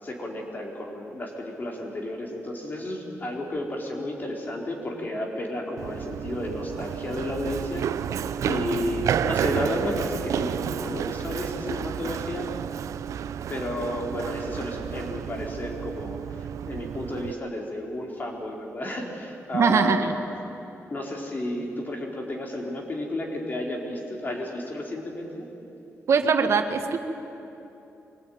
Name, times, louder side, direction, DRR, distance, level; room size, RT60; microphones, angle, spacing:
voice 1, 0.0-7.8 8.5-12.5 13.5-20.0 20.9-25.5, left 1 dB, 35° left, 0 dB, 4.4 m, -32 dB
Run, 5.8-17.3, right 9 dB, 85° right, 0.6 m, -31 dB
voice 2, 19.5-20.1 26.1-27.0, right 5 dB, 60° right, 7 dB, 1.5 m, -21 dB
24.0 x 18.5 x 9.4 m, 3.0 s
cardioid pair, 105°, 5 cm